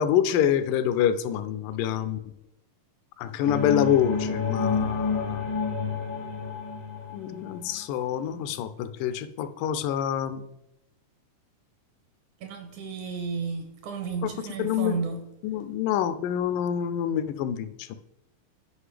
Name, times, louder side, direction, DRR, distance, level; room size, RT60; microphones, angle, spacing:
voice 1, 0.0-2.2 3.2-5.4 7.1-10.4 14.6-15.0 15.4-18.0, left 9 dB, 85° left, 2.1 m, -26 dB
sound 1, 3.4-7.9, left 5 dB, 45° left, 0.5 m, -29 dB
voice 2, 12.4-15.3, right 5 dB, 75° right, 1.9 m, -33 dB
9.8 x 5.2 x 3.3 m
omnidirectional pair, 3.9 m